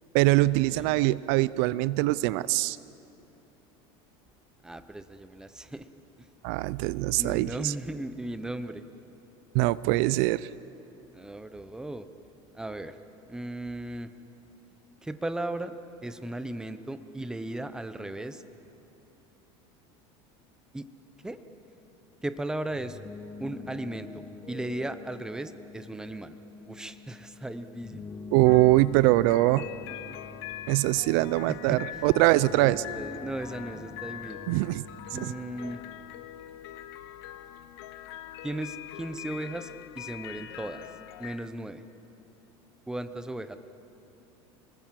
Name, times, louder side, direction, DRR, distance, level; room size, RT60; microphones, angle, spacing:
voice 1, 0.1-2.8 6.4-7.7 9.5-10.5 28.3-29.7 30.7-32.8 34.5-34.8 35.1-35.3, right 18 dB, 65° right, 19 dB, 0.5 m, -23 dB
voice 2, 4.6-5.9 7.2-8.8 11.1-12.1 12.5-13.0 13.3-14.1 15.0-15.8 16.0-18.4 20.7-20.9 21.2-21.4 22.2-23.0 23.4-26.4 26.6-28.0 31.5-32.1 32.5-34.5 35.1-35.8 38.4-40.9 41.2-41.8 42.9-43.6, right 1 dB, 5° right, 10 dB, 0.8 m, -36 dB
sound 1, 22.7-36.0, left 4 dB, 20° left, 1.8 m, -46 dB
sound 2, 28.4-41.4, left 12 dB, 80° left, 1.0 m, -43 dB
27.5 x 19.5 x 7.6 m, 2.9 s
cardioid pair, 145°, 13 cm